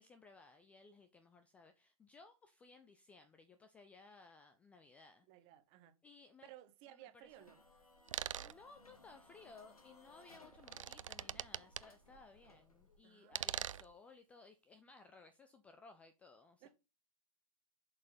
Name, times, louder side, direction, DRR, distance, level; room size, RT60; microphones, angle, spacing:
voice 1, 0.0-5.3 6.0-6.5 6.9-7.3 8.4-16.7, left 3 dB, 5° left, 0.3 m, -60 dB
voice 2, 5.3-6.0 6.4-7.6 13.0-13.5 13.7-13.8 16.6-16.7, right 14 dB, 30° right, 1.0 m, -58 dB
sound 1, 7.2-13.0, left 2 dB, 75° left, 1.9 m, -64 dB
sound 2, 8.1-8.5 10.4-11.8 13.3-13.9, right 9 dB, 60° right, 0.4 m, -42 dB
7.2 x 4.3 x 4.0 m
figure-of-eight pair, 115°, 19 cm